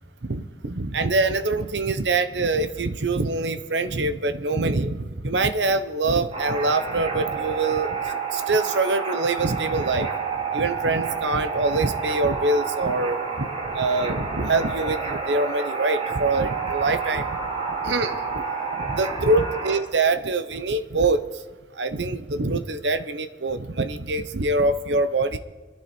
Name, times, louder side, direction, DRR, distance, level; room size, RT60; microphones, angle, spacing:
voice 1, 0.2-8.0 8.3-10.1 10.5-17.4 17.8-18.4 18.8-21.2 21.8-25.4, right 3 dB, 80° right, 11 dB, 0.9 m, -24 dB
sound 1, 6.3-19.8, right 5 dB, 35° right, 3.2 m, -29 dB
24.5 x 11.5 x 4.4 m, 1.3 s
head